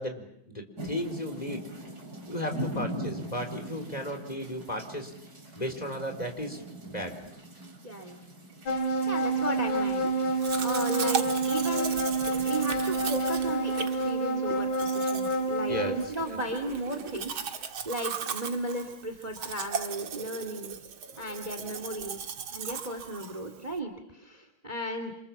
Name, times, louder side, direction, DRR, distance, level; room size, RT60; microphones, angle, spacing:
voice 1, 0.0-1.6 2.3-5.1 5.6-7.1 14.4-14.5 15.7-15.9 16.2-16.4 21.6-21.7, equal, 20° left, 5 dB, 4.3 m, -35 dB
sound 1, 0.8-13.6, equal, 50° right, 4.6 m, -42 dB
voice 2, 7.8-8.2 9.1-10.1 10.5-12.0 12.4-20.8 21.2-25.1, right 1 dB, 20° right, 7 dB, 2.4 m, -35 dB
sound 2, 8.7-16.1, right 2 dB, 75° left, 4.0 m, -28 dB
Domestic sounds home sounds, 10.4-23.8, right 7 dB, 80° right, 2.5 m, -37 dB
28.5 x 28.0 x 7.3 m, 0.76 s
omnidirectional pair, 2.2 m